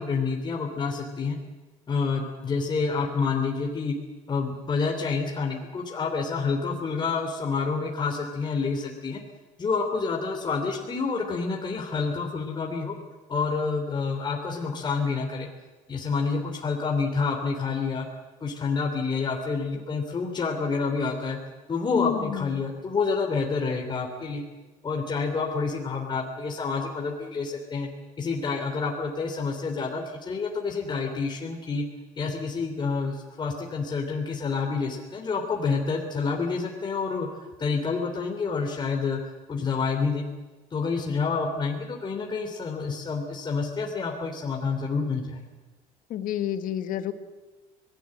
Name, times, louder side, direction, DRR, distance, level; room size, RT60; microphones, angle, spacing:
voice 1, 0.0-1.4 1.9-3.9 4.3-9.2 9.6-13.0 13.3-15.5 15.9-18.0 18.4-21.4 21.7-24.4 24.8-27.9 28.2-31.8 32.2-40.2 40.7-45.4, left 4 dB, 30° left, 1 dB, 3.4 m, -28 dB
voice 2, 21.9-22.5 46.1-47.1, left 11 dB, 60° left, 10 dB, 1.9 m, -29 dB
25.5 x 19.0 x 7.8 m, 1.2 s
supercardioid pair, 105°, 16 cm